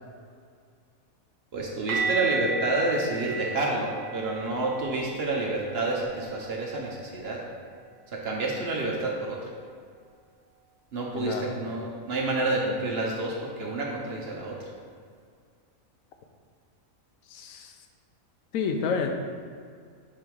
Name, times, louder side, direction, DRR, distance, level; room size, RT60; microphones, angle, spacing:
voice 1, 1.5-7.4 8.1-9.4 10.9-14.6, right 2 dB, 55° right, -2 dB, 0.9 m, -29 dB
sound 1, 1.9-7.7 7.9-8.2 8.5-8.7 11.9-12.0, right 3 dB, 70° right, 1.3 m, -35 dB
voice 2, 11.2-11.5 17.3-17.7 18.5-19.1, left 5 dB, 75° left, 5 dB, 1.0 m, -29 dB
5.4 x 3.8 x 4.6 m, 2.1 s
omnidirectional pair, 1.5 m